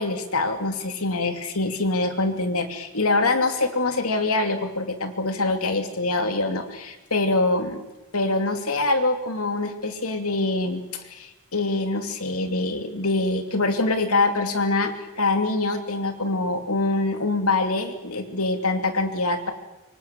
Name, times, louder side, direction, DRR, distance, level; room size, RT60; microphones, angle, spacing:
voice 1, 0.0-7.8 8.1-19.5, left 2 dB, 75° left, 6 dB, 2.7 m, -24 dB
25.0 x 23.0 x 7.6 m, 1.0 s
head